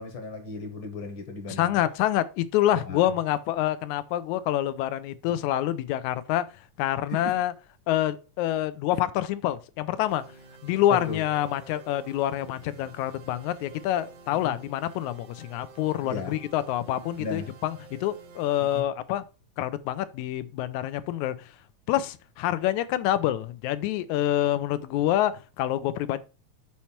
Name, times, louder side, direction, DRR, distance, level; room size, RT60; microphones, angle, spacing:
voice 1, 0.0-1.8 2.7-3.1 7.1-7.4 10.9-11.3 14.4-14.6 16.0-16.4 17.2-17.5 18.6-18.9, left 3 dB, 55° left, 1.5 m, -36 dB
voice 2, 1.5-6.5 6.8-7.5 7.9-10.2 10.6-19.2 19.6-21.5 21.9-26.2, left 12 dB, 85° left, 2.0 m, -27 dB
sound 1, 10.1-18.8, right 4 dB, 75° right, 2.3 m, -50 dB
7.2 x 4.4 x 4.4 m
omnidirectional pair, 3.4 m